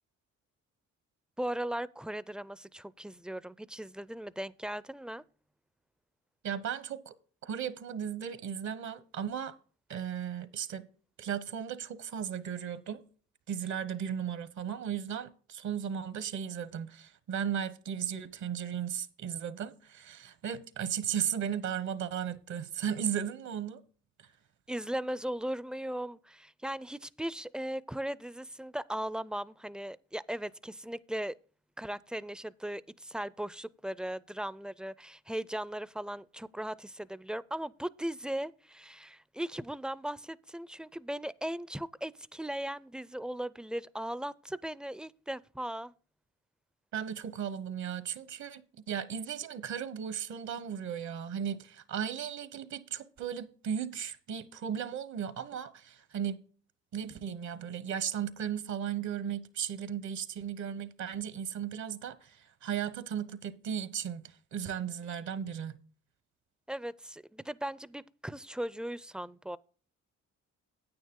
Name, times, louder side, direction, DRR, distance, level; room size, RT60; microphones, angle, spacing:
voice 1, 1.4-5.2 24.7-31.3 31.8-45.9 66.7-69.6, right 1 dB, 5° right, 0.4 m, -38 dB
voice 2, 6.4-7.1 7.4-9.5 9.9-10.9 11.2-13.0 13.5-23.8 24.2-24.3 46.9-48.6 48.9-56.4 56.9-65.8, right 8 dB, 70° right, 1.1 m, -36 dB
9.5 x 9.1 x 3.7 m
cardioid pair, 90°, 30 cm